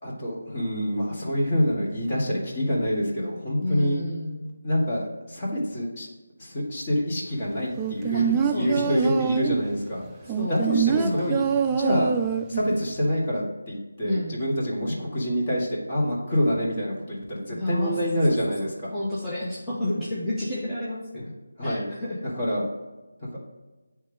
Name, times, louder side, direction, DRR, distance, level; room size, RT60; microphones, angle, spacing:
voice 1, 0.0-4.0 4.6-6.1 6.4-12.1 12.5-19.0 21.6-21.9 22.4-22.6 23.2-23.4, equal, 30° left, -4 dB, 1.7 m, -27 dB
voice 2, 3.6-4.4 8.1-9.2 10.2-10.6 10.9-11.6 11.9-12.1 14.0-14.4 17.5-18.5 18.9-21.3 21.6-22.2, left 1 dB, 5° left, -11 dB, 0.8 m, -31 dB
sound 1, 7.8-9.7 10.3-12.7 13.0-13.1, right 8 dB, 15° right, 0.3 m, -25 dB
9.2 x 3.3 x 3.4 m, 1.2 s
figure-of-eight pair, 160°, 0 cm